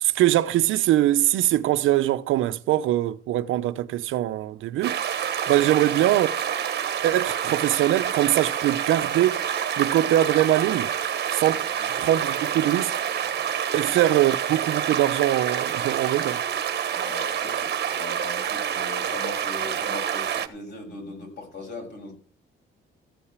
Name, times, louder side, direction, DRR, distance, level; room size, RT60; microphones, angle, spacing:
voice 1, 0.0-5.0 5.5-6.3 7.0-9.4 9.8-10.9 11.3-11.7 12.0-12.9 13.7-16.4, right 13 dB, 85° right, 0.8 m, -22 dB
sound 1, 4.8-20.5, right 9 dB, 55° right, 1.3 m, -27 dB
voice 2, 16.9-22.1, left 3 dB, 60° left, 7.1 m, -39 dB
14.5 x 5.7 x 8.2 m
cardioid pair, 90°, 20 cm